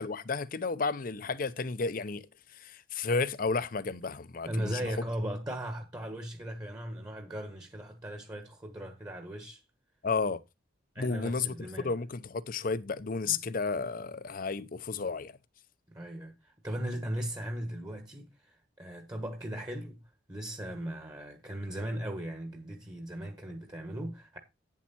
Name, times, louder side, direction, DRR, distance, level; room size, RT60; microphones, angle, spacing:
voice 1, 0.0-2.2 2.5-4.9 10.0-10.4 11.0-15.3, left 4 dB, 50° left, 0.7 m, -32 dB
voice 2, 4.4-9.6 10.9-11.9 13.3-13.4 15.9-20.0 20.3-24.4, right 1 dB, 20° right, 1.4 m, -38 dB
9.5 x 7.4 x 4.2 m
head